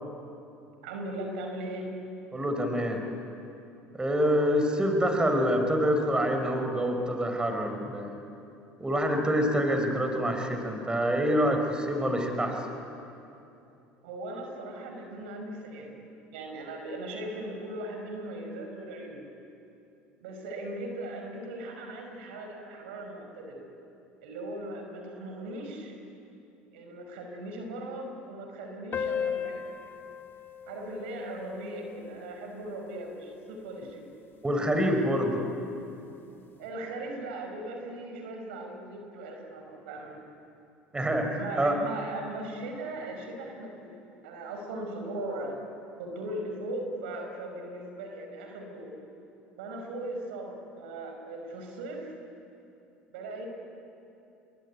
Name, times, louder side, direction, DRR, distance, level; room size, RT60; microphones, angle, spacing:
voice 1, 0.8-1.9 14.0-15.9 16.3-19.2 20.2-23.6 24.2-26.0 26.7-29.6 30.7-34.1 36.6-40.2 41.3-45.6 46.0-48.9 49.6-52.1 53.1-53.5, right 1 dB, 85° right, 3 dB, 5.5 m, -38 dB
voice 2, 2.3-3.0 3.9-8.2 8.8-12.6 34.4-35.4 40.9-41.7, equal, 15° right, 4 dB, 4.8 m, -26 dB
sound 1, 28.9-33.9, left 7 dB, 40° left, 2.3 m, -38 dB
28.5 x 22.0 x 9.7 m, 2.8 s
supercardioid pair, 90°, 6 cm